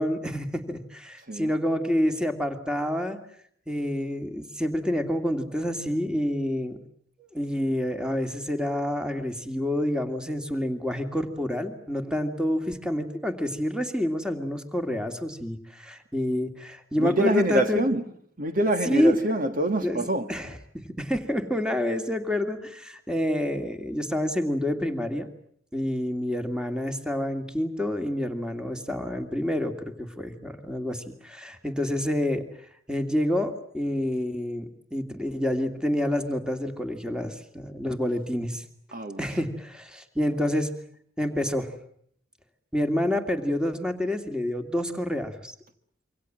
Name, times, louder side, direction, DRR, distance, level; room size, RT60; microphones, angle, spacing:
voice 1, 0.0-3.2 3.7-6.8 7.2-17.8 18.8-19.2 19.8-25.3 25.7-32.4 32.9-38.6 39.2-40.7 41.2-41.7 42.7-45.5, left 1 dB, 5° right, 2.5 m, -28 dB
voice 2, 17.0-18.0 18.4-20.3 38.9-39.2, right 1 dB, 45° right, 1.8 m, -25 dB
27.5 x 25.0 x 7.7 m
head